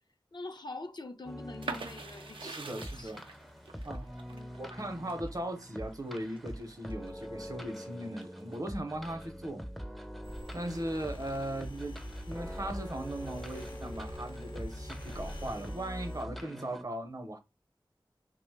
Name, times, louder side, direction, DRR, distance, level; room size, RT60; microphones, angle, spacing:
voice 1, 0.3-3.2 4.3-4.7, left 2 dB, 55° left, 0.5 m, -45 dB
sound 1, 1.2-16.8, equal, ahead, 0.4 m, -44 dB
sound 2, 1.6-7.3 7.7-8.5, right 4 dB, 90° right, 0.4 m, -44 dB
voice 2, 2.4-3.3 3.8-4.1 4.6-9.6 10.0-10.1 10.5-12.0 12.3-17.4, right 1 dB, 45° right, 0.6 m, -38 dB
sound 3, 10.2-16.3, left 1 dB, 75° left, 0.8 m, -46 dB
2.9 x 2.0 x 3.3 m
wide cardioid pair, 50°, 9 cm